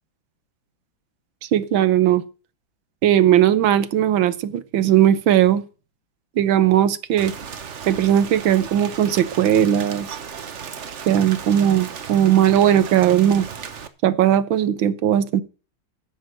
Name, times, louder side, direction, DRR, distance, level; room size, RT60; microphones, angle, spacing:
voice 1, 1.5-2.2 3.0-5.6 6.4-7.3 7.9-10.1 11.1-13.5 14.0-15.4, right 11 dB, 70° right, 1.6 m, -18 dB
Rain, 7.2-13.9, right 6 dB, 45° right, 1.0 m, -35 dB
10.5 x 7.2 x 7.5 m
omnidirectional pair, 2.3 m